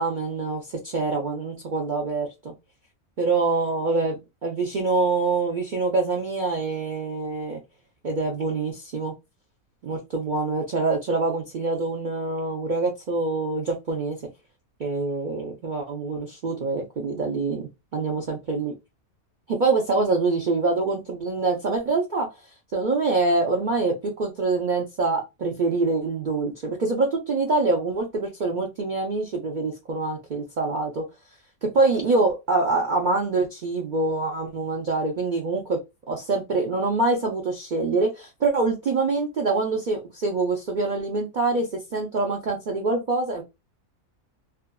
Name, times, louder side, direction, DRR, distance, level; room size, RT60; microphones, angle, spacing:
voice 1, 0.0-2.5 3.2-7.6 8.0-9.1 9.8-14.3 14.8-18.7 19.5-22.3 22.7-31.1 31.6-35.8 36.1-43.4, right 3 dB, 90° right, 0.4 m, -25 dB
2.5 x 2.4 x 2.2 m
omnidirectional pair, 1.6 m